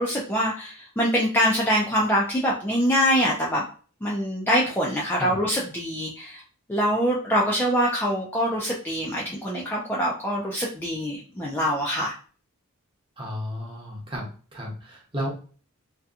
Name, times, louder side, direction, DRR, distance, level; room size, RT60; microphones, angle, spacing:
voice 1, 0.0-3.6 4.0-6.4 6.7-12.1, equal, 10° left, -4 dB, 0.3 m, -24 dB
voice 2, 13.2-15.3, equal, 25° right, -3 dB, 0.8 m, -33 dB
2.7 x 2.2 x 2.4 m, 0.40 s
head